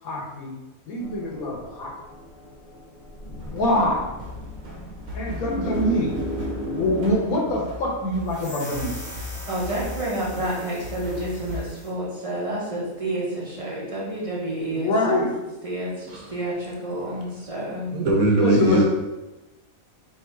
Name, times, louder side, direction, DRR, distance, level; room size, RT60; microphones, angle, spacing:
voice 1, 0.0-0.5 0.9-1.9 3.4-4.1 5.1-6.1 6.6-9.0 10.4-10.5 14.7-15.3 18.4-18.8, left 1 dB, 80° left, -1 dB, 1.4 m, -24 dB
sound 1, 1.0-7.1, equal, 45° left, 0.9 m, -35 dB
sound 2, 3.4-11.6, left 1 dB, 55° right, 1.1 m, -37 dB
sound 3, 8.2-11.9, equal, 15° left, 0.9 m, -41 dB
voice 2, 9.5-15.3 15.6-17.9, right 1 dB, 30° right, -6 dB, 0.8 m, -29 dB
voice 3, 17.9-18.8, right 2 dB, 75° right, 0 dB, 1.2 m, -19 dB
3.5 x 2.6 x 4.4 m, 1.1 s
omnidirectional pair, 1.5 m